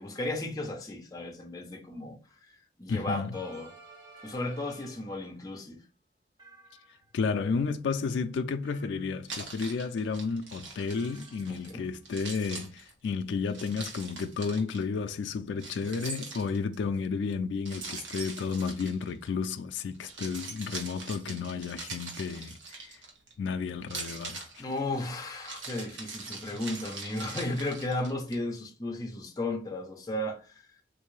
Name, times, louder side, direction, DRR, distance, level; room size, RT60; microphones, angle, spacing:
voice 1, 0.0-2.2 2.8-3.7 4.2-5.8 11.5-11.9 24.6-30.7, left 2 dB, 20° left, 0.6 m, -34 dB
voice 2, 2.9-3.3 7.1-23.0 23.4-24.6, left 5 dB, 80° left, 0.3 m, -32 dB
sound 1, 3.3-5.3 6.4-7.3 8.6-9.6 10.9-11.8, right 3 dB, 25° right, 0.7 m, -54 dB
Keys jangling, 9.3-11.7 12.1-14.8 15.6-16.8 17.7-19.5 19.9-23.3 23.8-28.4, right 4 dB, 80° right, 1.0 m, -42 dB
3.6 x 2.6 x 3.1 m
head